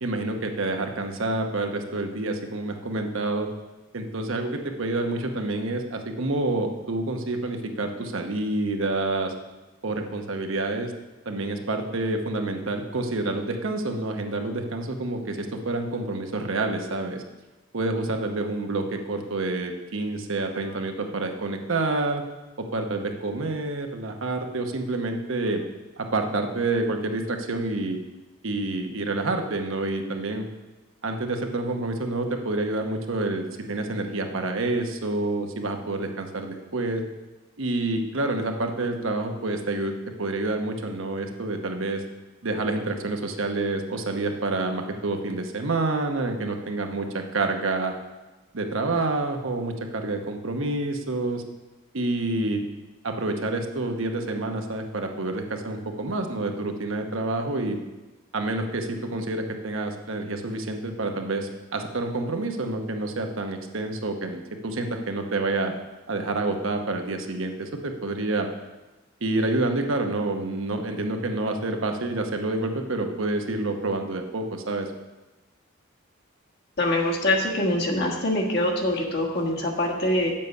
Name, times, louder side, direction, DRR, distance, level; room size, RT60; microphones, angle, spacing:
voice 1, 0.0-3.5 3.9-9.3 9.8-10.9 11.3-17.2 17.7-22.2 22.6-25.6 26.0-28.0 28.4-30.5 31.0-37.0 37.6-42.0 42.4-47.9 48.5-51.4 51.9-52.6 53.0-57.8 58.3-65.7 66.1-68.5 69.2-74.9, right 2 dB, 70° right, 4 dB, 0.9 m, -28 dB
voice 2, 76.8-80.3, left 1 dB, 50° left, -1 dB, 1.5 m, -24 dB
7.9 x 7.5 x 5.4 m, 1.1 s
head